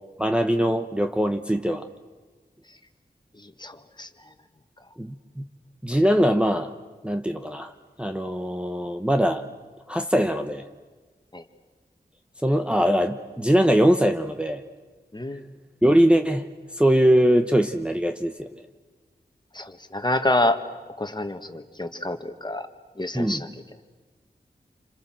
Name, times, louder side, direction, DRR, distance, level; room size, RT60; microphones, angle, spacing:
voice 1, 0.2-1.8 5.0-5.4 5.8-6.7 7.0-7.7 8.0-9.4 9.9-10.6 12.4-14.6 15.8-16.5 16.8-18.5 23.1-23.4, equal, 5° right, 5 dB, 1.0 m, -21 dB
voice 2, 3.4-4.1 11.3-11.4 15.1-15.5 19.5-20.6 21.0-22.7 23.0-23.5, left 1 dB, 25° left, 8 dB, 1.8 m, -27 dB
28.0 x 27.0 x 7.6 m, 1.3 s
wide cardioid pair, 55°, 17 cm